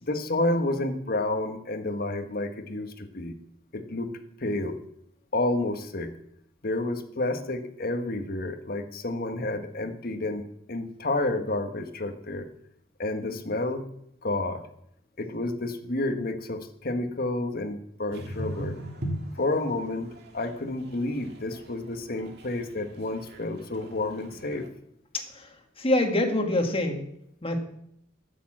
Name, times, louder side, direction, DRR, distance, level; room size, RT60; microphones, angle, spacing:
voice 1, 0.0-3.3 3.7-4.1 4.4-4.8 5.3-6.1 6.6-12.5 13.0-13.8 14.2-14.7 15.2-18.7 19.4-24.7, left 2 dB, 50° left, 7 dB, 1.4 m, -30 dB
sound 1, 18.1-24.7, right 1 dB, 60° right, 2.1 m, -40 dB
voice 2, 25.8-27.0 27.4-27.6, left 1 dB, 30° left, 4 dB, 1.8 m, -25 dB
13.0 x 7.2 x 7.4 m, 0.74 s
head